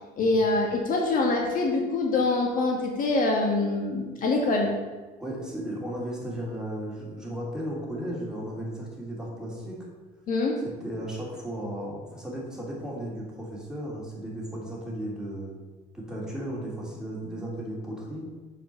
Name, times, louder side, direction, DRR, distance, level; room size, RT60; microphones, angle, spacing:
voice 1, 0.2-4.7 10.3-10.6, left 2 dB, 55° left, 1 dB, 1.5 m, -24 dB
voice 2, 5.2-9.8 10.8-15.5 15.9-18.2, right 1 dB, 5° right, -4 dB, 2.7 m, -35 dB
7.5 x 4.9 x 6.6 m, 1.3 s
cardioid pair, 110°, 17 cm